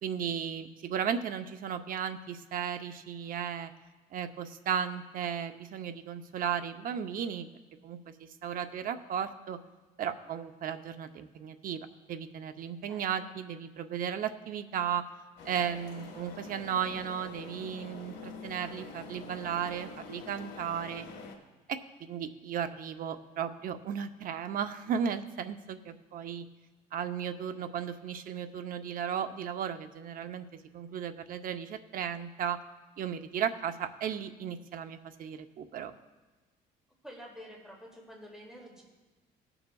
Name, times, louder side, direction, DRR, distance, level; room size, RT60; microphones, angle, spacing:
voice 1, 0.0-3.7 4.1-7.5 7.8-9.6 10.0-15.0 15.5-21.0 21.7-26.5 26.9-32.6 33.0-35.9, right 8 dB, 55° right, 9 dB, 0.7 m, -35 dB
sound 1, 15.4-21.4, left 4 dB, 80° left, 1.7 m, -46 dB
voice 2, 37.0-38.8, equal, 5° right, -3 dB, 2.4 m, -48 dB
18.5 x 6.9 x 2.3 m, 1.2 s
cardioid pair, 110°, 17 cm